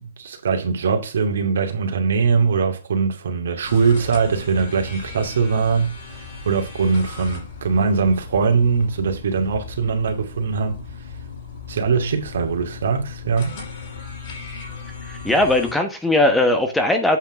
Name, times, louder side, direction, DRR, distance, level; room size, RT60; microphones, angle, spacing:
voice 1, 0.0-10.8 11.7-13.6, right 5 dB, 70° right, 2.3 m, -21 dB
sound 1, 3.6-15.7, left 5 dB, 45° left, 5.4 m, -37 dB
voice 2, 15.1-17.2, left 2 dB, 5° left, 1.2 m, -19 dB
8.3 x 5.8 x 4.8 m
hypercardioid pair, 130°, 0 cm